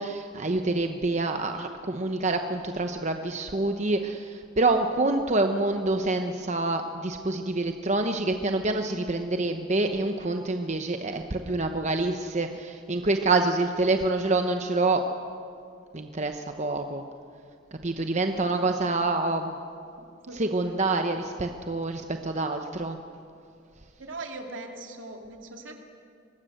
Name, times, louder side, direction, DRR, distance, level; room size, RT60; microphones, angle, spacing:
voice 1, 0.0-15.0 15.9-17.0 17.8-19.6 20.4-23.0, right 2 dB, 35° right, 6 dB, 0.9 m, -27 dB
voice 2, 18.3-19.0 20.0-20.4 24.0-25.8, right 2 dB, 75° right, 3 dB, 2.6 m, -41 dB
23.5 x 19.5 x 8.0 m, 2.4 s
head